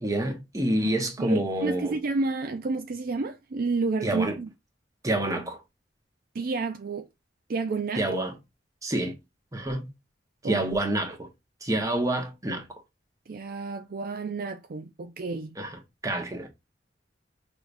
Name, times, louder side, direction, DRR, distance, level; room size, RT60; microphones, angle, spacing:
voice 1, 0.0-2.0 4.0-4.4 5.0-5.6 8.0-8.3 8.8-9.1 9.5-9.9 10.4-11.3 11.6-12.7 15.6-16.5, right 1 dB, 20° right, 1.3 m, -28 dB
voice 2, 1.2-4.5 6.3-7.1 7.5-8.0 10.4-10.6 13.3-15.6, right 3 dB, 55° right, 0.5 m, -30 dB
5.9 x 3.4 x 2.6 m
head